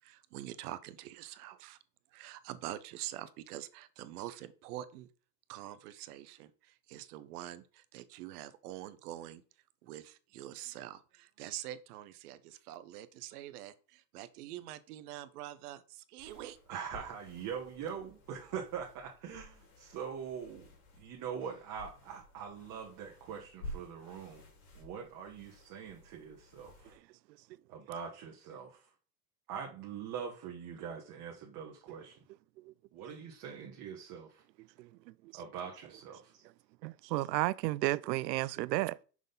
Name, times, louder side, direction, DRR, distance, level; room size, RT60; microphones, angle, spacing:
voice 1, 0.0-1.8 2.1-5.1 5.5-9.4 9.8-16.6, right 13 dB, 65° right, 0.9 m, -45 dB
sound 1, 16.2-27.0, left 1 dB, 65° left, 3.4 m, -53 dB
voice 2, 16.7-20.7 21.0-24.4 24.7-27.0 27.7-28.8 29.5-32.2 32.9-34.4 35.3-36.4, right 7 dB, 40° right, 1.5 m, -43 dB
voice 3, 36.8-39.0, right 18 dB, 80° right, 0.6 m, -32 dB
6.3 x 3.9 x 5.3 m
supercardioid pair, 130°, 49 cm